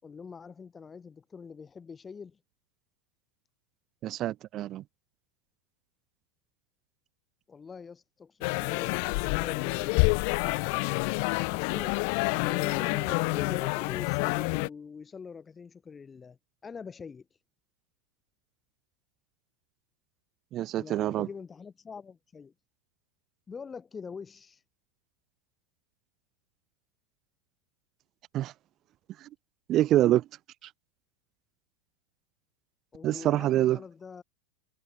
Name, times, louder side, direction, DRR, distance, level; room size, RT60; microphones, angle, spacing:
voice 1, 0.0-2.4 7.5-10.8 11.5-11.9 12.2-16.4 16.6-17.2 20.7-22.5 23.5-24.6 32.9-34.2, left 5 dB, 15° left, 4.8 m, -44 dB
voice 2, 4.0-4.8 20.5-21.3 28.3-28.5 29.2-29.3 29.7-30.2 33.0-33.8, right 13 dB, 35° right, 1.5 m, -25 dB
sound 1, 8.4-14.7, left 36 dB, 55° left, 1.9 m, -28 dB
supercardioid pair, 145°, 0 cm